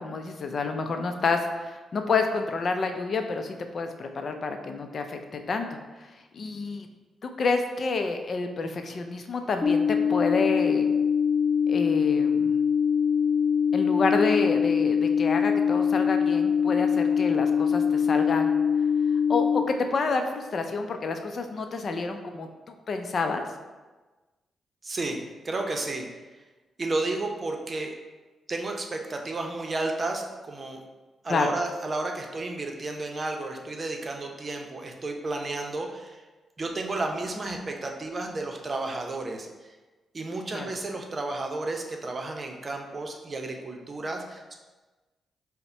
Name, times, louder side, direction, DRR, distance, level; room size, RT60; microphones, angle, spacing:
voice 1, 0.0-6.9 7.4-10.9 11.7-12.6 13.7-18.6 19.3-23.5 31.3-31.6 40.5-40.7, left 4 dB, 55° left, 5 dB, 0.5 m, -29 dB
sound 1, 9.6-19.6, left 7 dB, 30° left, 0.8 m, -23 dB
voice 2, 24.8-25.2 25.4-26.0 26.8-27.9 28.5-30.8 31.2-36.2 36.6-39.5 40.1-44.6, right 2 dB, 45° right, 2 dB, 0.7 m, -32 dB
5.4 x 2.2 x 4.3 m, 1.2 s
supercardioid pair, 45°, 0 cm